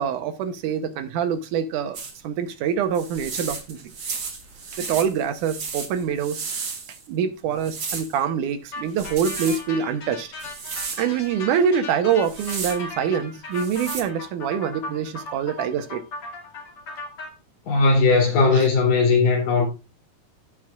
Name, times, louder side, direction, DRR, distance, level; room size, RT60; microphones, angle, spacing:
voice 1, 0.0-2.0 2.2-3.8 4.7-6.4 7.1-10.3 11.0-16.0 18.5-18.7, right 7 dB, 75° right, 2.3 m, -25 dB
sound 1, 1.9-2.2 2.9-7.1 7.6-8.2 8.9-9.6 10.4-11.0 12.1-12.8 13.5-14.0, right 5 dB, 45° right, 1.3 m, -33 dB
sound 2, 8.7-17.3, left 2 dB, 45° left, 2.9 m, -37 dB
voice 2, 17.7-19.7, left 4 dB, 90° left, 5.0 m, -18 dB
16.5 x 6.5 x 2.4 m
omnidirectional pair, 3.8 m